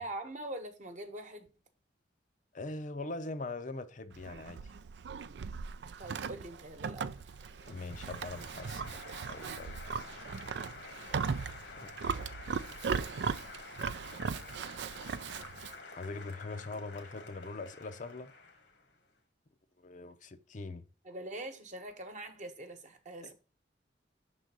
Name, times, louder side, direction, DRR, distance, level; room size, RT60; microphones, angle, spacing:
voice 1, 0.0-1.5 6.0-7.1 21.0-23.3, right 1 dB, 45° right, 1.1 m, -43 dB
voice 2, 2.5-4.6 7.7-9.0 9.3-9.8 11.8-11.9 15.9-18.3 19.8-20.9 23.2-23.3, left 3 dB, 45° left, 0.6 m, -42 dB
Livestock farm animals working animals, 4.1-15.8, right 6 dB, 65° right, 0.4 m, -38 dB
Applause, 6.5-19.0, left 4 dB, 80° left, 1.5 m, -50 dB
6.2 x 3.9 x 5.9 m
head